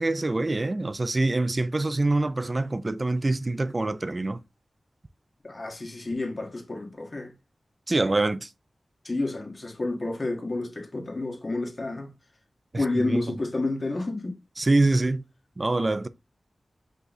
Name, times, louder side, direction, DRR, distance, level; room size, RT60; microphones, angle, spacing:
voice 1, 0.0-4.4 7.9-8.5 13.0-13.4 14.6-15.2 15.6-16.1, right 2 dB, 40° right, 0.4 m, -25 dB
voice 2, 5.4-7.3 9.0-12.1 12.7-14.3, left 2 dB, 45° left, 1.6 m, -30 dB
5.4 x 2.3 x 4.1 m
cardioid pair, 50°, 0 cm